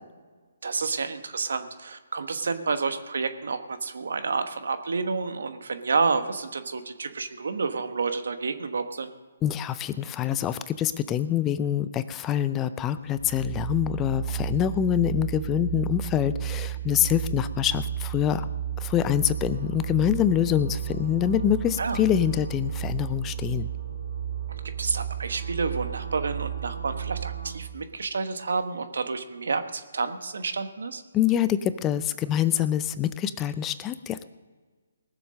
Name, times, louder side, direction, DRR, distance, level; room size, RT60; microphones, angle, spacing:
voice 1, 0.6-9.1 21.8-22.0 24.5-31.0, right 4 dB, 70° right, 9 dB, 1.2 m, -29 dB
voice 2, 9.4-18.5 18.8-23.7 31.1-34.3, left 11 dB, 15° left, 14 dB, 0.5 m, -25 dB
sound 1, 13.0-27.5, right 9 dB, 90° right, 4.9 m, -33 dB
19.5 x 7.2 x 6.4 m, 1.4 s
hypercardioid pair, 145°, 0 cm